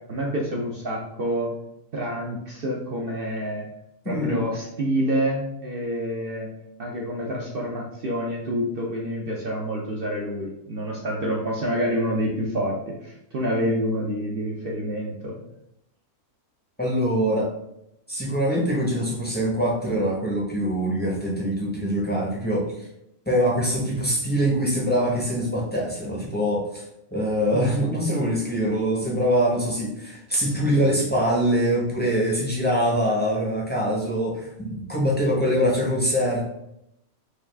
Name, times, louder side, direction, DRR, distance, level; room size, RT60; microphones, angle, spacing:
voice 1, 0.1-1.5 1.9-3.7 4.1-6.5 6.8-15.3 27.5-27.7 30.4-30.9, equal, 55° right, -2 dB, 0.6 m, -28 dB
voice 2, 4.0-4.4 16.8-17.5 18.1-22.9 23.3-26.8 27.1-36.5, equal, 10° left, -4 dB, 0.5 m, -24 dB
4.9 x 2.3 x 3.3 m, 0.80 s
omnidirectional pair, 1.6 m